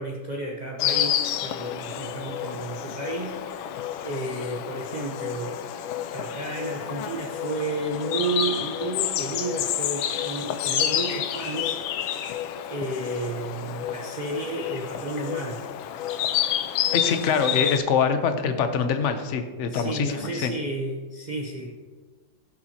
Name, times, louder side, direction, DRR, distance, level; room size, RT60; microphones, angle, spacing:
voice 1, 0.0-3.8 4.0-5.6 6.0-12.2 12.7-15.7 19.7-21.7, right 2 dB, 50° right, -2 dB, 0.5 m, -32 dB
Insect, 0.8-17.8, left 10 dB, 85° left, 1.4 m, -29 dB
voice 2, 16.9-20.5, left 6 dB, 60° left, 8 dB, 0.7 m, -24 dB
16.0 x 7.2 x 2.9 m, 1.4 s
omnidirectional pair, 2.1 m